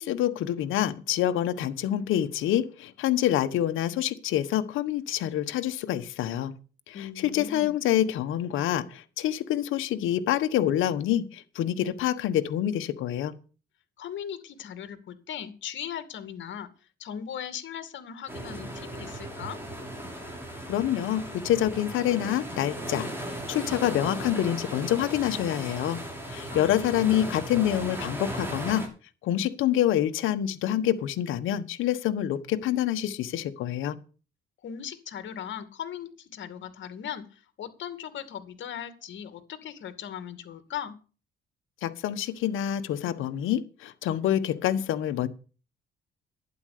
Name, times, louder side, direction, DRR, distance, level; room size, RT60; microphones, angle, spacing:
voice 1, 0.0-6.5 6.9-13.3 20.7-26.0 26.3-28.8 29.2-34.0 41.8-45.3, left 11 dB, 85° left, 9 dB, 1.3 m, -27 dB
voice 2, 6.9-7.7 14.0-16.7 17.0-19.6 26.5-26.7 34.6-40.9, left 9 dB, 70° left, 11 dB, 2.4 m, -38 dB
sound 1, 18.3-28.9, right 1 dB, 10° right, 6.4 m, -37 dB
11.5 x 9.8 x 6.7 m, 0.36 s
cardioid pair, 90°, 20 cm